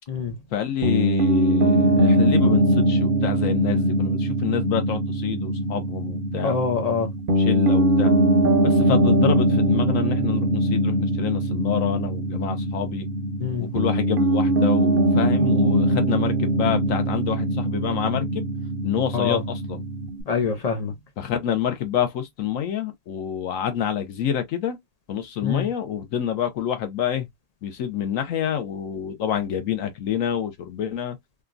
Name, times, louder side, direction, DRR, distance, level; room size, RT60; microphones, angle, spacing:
voice 1, 0.5-6.7 7.4-8.1 8.6-13.1 13.6-18.4 18.8-19.8 21.2-24.8 25.1-27.3 27.6-31.2, left 9 dB, 65° left, 1.2 m, -27 dB
Piano, 0.8-20.2, right 1 dB, 50° right, 0.7 m, -21 dB
voice 2, 6.4-7.1 13.4-13.7 19.1-19.4 20.3-20.9 25.4-25.7, left 5 dB, 85° left, 0.3 m, -25 dB
3.4 x 2.4 x 2.4 m
omnidirectional pair, 1.5 m